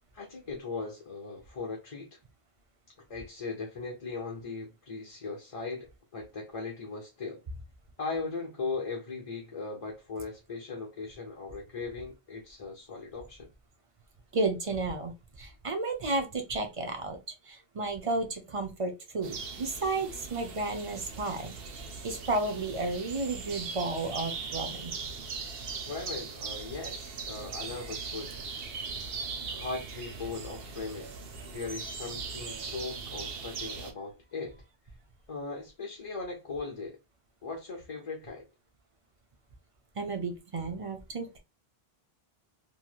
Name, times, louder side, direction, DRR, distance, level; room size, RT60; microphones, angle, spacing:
voice 1, 0.1-2.2 3.1-7.4 8.0-13.5 25.9-28.4 29.4-31.1 31.4-34.5 35.3-37.0 37.4-38.4, left 4 dB, 40° left, 0.7 m, -38 dB
voice 2, 14.3-15.1 15.4-21.5 22.0-24.9 40.0-41.4, right 2 dB, 40° right, 0.6 m, -32 dB
sound 1, 19.2-33.9, right 5 dB, 70° right, 0.8 m, -40 dB
3.1 x 2.7 x 2.3 m
omnidirectional pair, 1.0 m